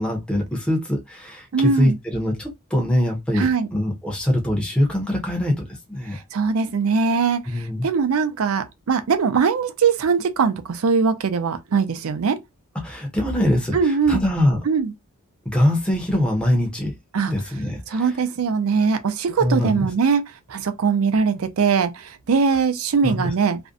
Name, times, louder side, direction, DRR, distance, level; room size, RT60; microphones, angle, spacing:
voice 1, 0.0-3.5 3.7-6.2 7.5-7.9 12.8-14.6 15.4-16.9 17.3-18.1 19.4-19.9 23.0-23.3, left 1 dB, 5° left, 0.6 m, -23 dB
voice 2, 1.5-2.0 3.3-3.7 6.1-12.4 13.7-14.2 14.7-14.9 17.1-17.3 17.9-20.2 20.5-23.6, right 5 dB, 70° right, 0.4 m, -21 dB
2.5 x 2.1 x 2.4 m
head